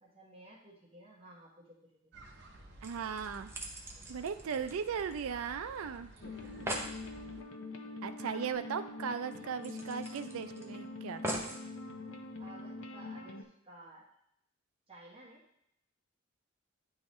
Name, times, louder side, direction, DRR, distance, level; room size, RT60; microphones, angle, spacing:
voice 1, 0.0-2.1 6.2-6.7 8.2-8.5 12.4-13.3 13.6-14.1 14.9-15.4, right 1 dB, 25° right, -5 dB, 1.3 m, -55 dB
sound 1, 2.1-7.4, right 2 dB, 55° right, 0.8 m, -54 dB
sound 2, 2.8-5.5 5.7-5.8 6.2-6.3 6.4-7.0 8.5-8.6 8.9-9.0 9.6-10.6 11.2-11.6 12.4-12.5, right 1 dB, 10° right, 0.6 m, -41 dB
voice 2, 2.8-3.5 4.1-6.1 8.0-11.4, right 6 dB, 85° right, 9 dB, 0.4 m, -37 dB
sound 3, 6.2-13.4, left 3 dB, 70° left, 0.6 m, -44 dB
9.5 x 3.8 x 3.1 m, 0.74 s
head